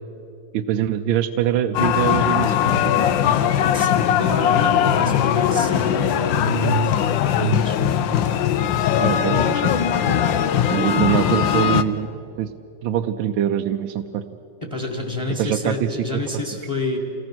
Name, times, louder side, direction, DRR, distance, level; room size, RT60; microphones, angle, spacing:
voice 1, 0.5-2.9 9.0-9.8 10.1-10.3 10.7-12.1 12.4-12.5 12.8-14.2 15.4-16.0, right 10 dB, 75° right, 6 dB, 1.4 m, -23 dB
sound 1, 1.7-11.8, left 9 dB, 70° left, 1.4 m, -20 dB
voice 2, 3.5-3.9 4.2-6.9 7.4-7.9 14.6-17.0, equal, 15° left, 3 dB, 1.7 m, -27 dB
28.0 x 19.0 x 6.1 m, 2.8 s
omnidirectional pair, 2.3 m